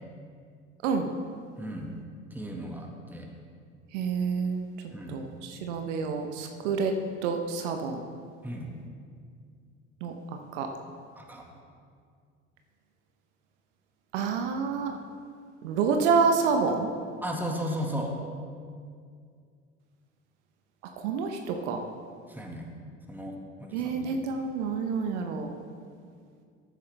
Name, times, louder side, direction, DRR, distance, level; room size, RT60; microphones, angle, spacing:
voice 1, 0.8-1.1 3.9-4.7 5.1-6.9 7.2-8.0 10.0-10.1 10.5-10.7 14.1-14.9 15.6-16.9 21.0-21.8 23.7-25.5, right 5 dB, 70° right, 4 dB, 1.0 m, -28 dB
voice 2, 1.6-1.9 2.3-3.3 4.9-5.2 6.6-6.7 8.4-8.7 11.2-11.5 17.2-18.2 22.3-22.6 23.1-24.1, equal, 5° right, 0 dB, 1.8 m, -35 dB
14.0 x 8.4 x 3.4 m, 2.2 s
hypercardioid pair, 65°, 36 cm